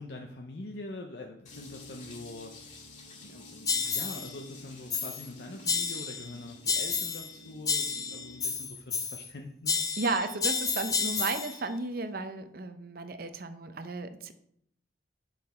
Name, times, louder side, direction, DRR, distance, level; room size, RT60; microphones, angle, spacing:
voice 1, 0.0-9.9, left 2 dB, 60° left, 3 dB, 0.6 m, -44 dB
sound 1, 1.4-8.3, left 4 dB, 40° left, 1.8 m, -53 dB
sound 2, 1.5-8.6, right 2 dB, 75° left, 1.4 m, -52 dB
sound 3, 3.7-4.3 4.9-5.3 5.7-6.3 6.7-7.3 7.7-9.3 9.7-11.6, left 5 dB, 20° left, 0.6 m, -31 dB
voice 2, 10.0-14.3, right 3 dB, 50° right, 10 dB, 0.6 m, -34 dB
7.7 x 5.8 x 4.3 m, 0.73 s
head